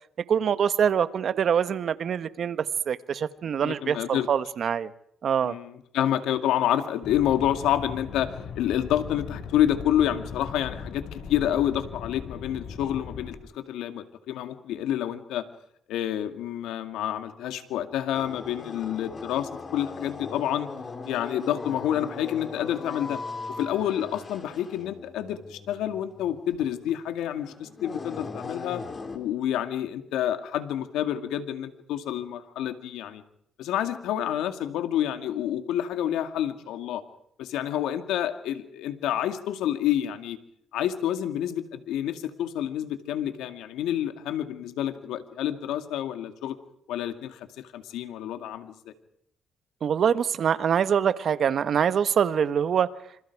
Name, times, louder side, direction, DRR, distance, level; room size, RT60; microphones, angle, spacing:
voice 1, 0.3-4.9 5.2-5.6 49.8-52.9, right 8 dB, 60° right, 13 dB, 1.3 m, -24 dB
voice 2, 3.6-4.3 5.4-15.4 15.9-20.7 21.1-23.2 23.6-28.8 29.1-33.2 33.6-37.0 37.4-40.4 40.7-46.6 46.9-48.9, left 11 dB, 90° left, 8 dB, 2.3 m, -28 dB
sound 1, 7.0-13.4, left 6 dB, 70° left, 5.2 m, -39 dB
sound 2, 18.1-29.2, left 4 dB, 35° left, 3.8 m, -39 dB
27.0 x 27.0 x 4.8 m, 0.70 s
cardioid pair, 90°, 0 cm